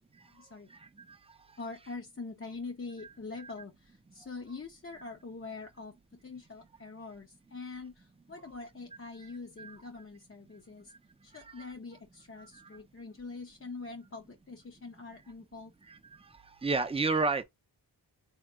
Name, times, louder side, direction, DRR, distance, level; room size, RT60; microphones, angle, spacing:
voice 1, 0.3-0.7 1.6-5.9 6.2-10.9 11.2-15.7, left 3 dB, 25° left, 0.7 m, -44 dB
voice 2, 12.4-12.7 15.9-16.0 16.6-17.4, right 3 dB, 10° right, 0.5 m, -30 dB
3.3 x 2.9 x 2.3 m
cardioid pair, 45°, 49 cm